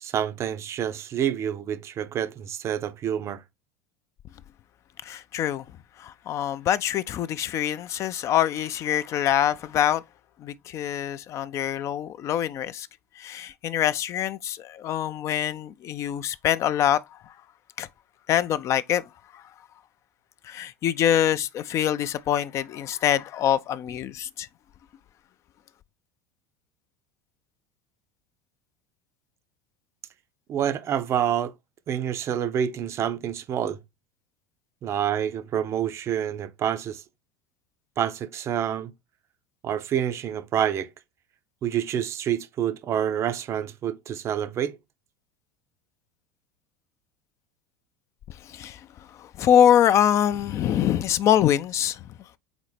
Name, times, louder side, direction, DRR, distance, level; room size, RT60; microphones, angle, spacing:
voice 1, 0.0-3.4 30.5-31.5 31.9-33.8 34.8-37.0 38.0-38.9 39.6-40.9 41.6-44.8, right 9 dB, 35° right, 0.5 m, -27 dB
voice 2, 5.0-5.6 6.0-10.0 10.4-12.9 13.2-17.2 17.8-17.9 18.3-19.0 19.3-19.4 20.4-24.5 48.4-48.8 49.2-52.0, left 10 dB, 40° left, 0.3 m, -24 dB
4.0 x 4.0 x 3.1 m
figure-of-eight pair, 75°, 8 cm